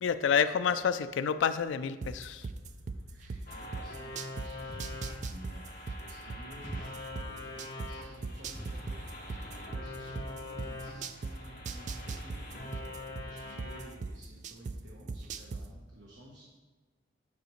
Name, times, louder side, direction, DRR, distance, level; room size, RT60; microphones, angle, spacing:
voice 1, 0.0-2.5, left 7 dB, 80° left, 12 dB, 0.3 m, -28 dB
sound 1, 2.0-4.5 4.8-7.9 8.2-11.3 11.6-14.7 15.1-15.6, right 4 dB, 40° right, 0.3 m, -38 dB
voice 2, 3.1-16.6, right 1 dB, 75° right, -3 dB, 1.0 m, -54 dB
sound 2, 3.5-13.9, left 2 dB, 50° left, 1.6 m, -44 dB
sound 3, 4.7-5.1 6.6-7.0 8.5-8.9, equal, 15° right, 2.0 m, -45 dB
9.3 x 4.9 x 3.1 m, 1.3 s
head